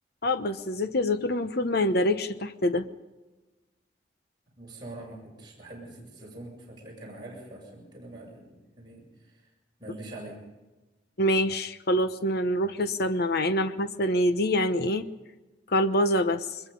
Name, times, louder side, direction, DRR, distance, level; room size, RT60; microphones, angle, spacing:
voice 1, 0.2-2.9 11.2-15.1 15.7-16.5, left 1 dB, 60° left, 10 dB, 1.0 m, -25 dB
voice 2, 4.6-8.5 8.8-9.0 9.8-10.4, right 2 dB, 25° right, -4 dB, 7.5 m, -43 dB
23.0 x 21.5 x 5.4 m, 1.1 s
head